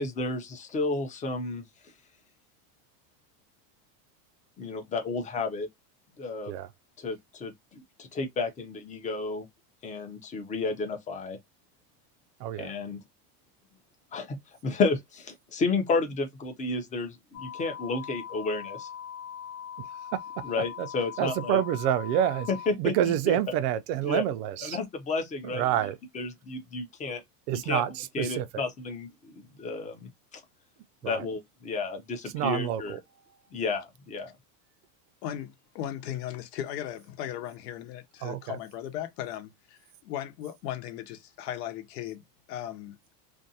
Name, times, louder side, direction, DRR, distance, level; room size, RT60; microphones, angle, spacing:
voice 1, 0.0-1.7 4.6-5.7 6.2-6.5 7.0-9.5 9.8-11.4 12.6-13.0 14.1-18.9 20.5-21.6 22.5-23.4 24.0-24.2 24.6-25.7 26.1-27.2 27.7-27.8 28.1-30.4 31.0-32.9 33.5-34.3, left 3 dB, 15° left, 0.5 m, -32 dB
voice 2, 12.4-12.7 19.8-20.2 20.8-20.9 21.2-22.5 22.8-24.8 25.4-26.0 27.5-28.6 31.0-31.3 32.3-33.0 38.2-38.6, right 11 dB, 75° right, 0.6 m, -28 dB
sound 1, 17.3-22.7, left 8 dB, 40° left, 1.0 m, -41 dB
voice 3, 35.2-42.2 42.5-43.0, left 11 dB, 85° left, 0.9 m, -37 dB
2.6 x 2.3 x 2.6 m
supercardioid pair, 135°, 48 cm